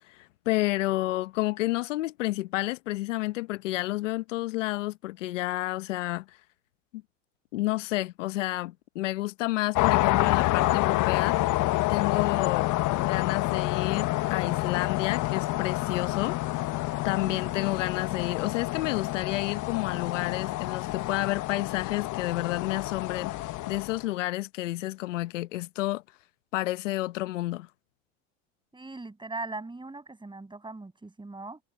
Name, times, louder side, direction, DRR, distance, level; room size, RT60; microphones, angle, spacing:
voice 1, 0.0-6.4 6.9-7.0 7.5-11.4 11.9-12.7 13.0-16.4 17.0-26.0 26.5-27.7, left 17 dB, 90° left, 1.0 m, -30 dB
sound 1, 9.8-24.0, left 18 dB, 55° left, 1.1 m, -28 dB
voice 2, 17.2-17.6 28.7-31.6, right 3 dB, 15° right, 7.9 m, -40 dB
hypercardioid pair, 85°, 36 cm